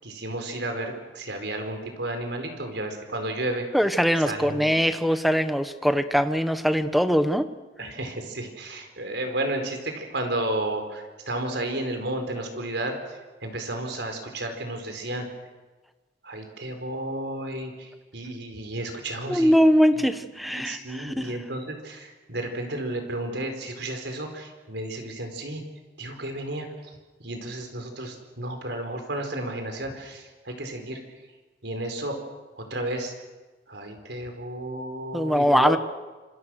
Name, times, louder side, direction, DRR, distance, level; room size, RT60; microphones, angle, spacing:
voice 1, 0.0-3.6 4.2-4.7 7.8-12.9 13.4-15.2 16.2-19.5 19.9-20.1 20.5-25.6 26.0-26.7 27.2-31.0 31.6-32.2 32.6-33.1 33.7-35.8, right 1 dB, 70° right, 5 dB, 4.7 m, -32 dB
voice 2, 3.7-7.5 19.3-21.3 35.1-35.8, equal, ahead, 10 dB, 1.1 m, -22 dB
27.0 x 27.0 x 6.5 m, 1.3 s
head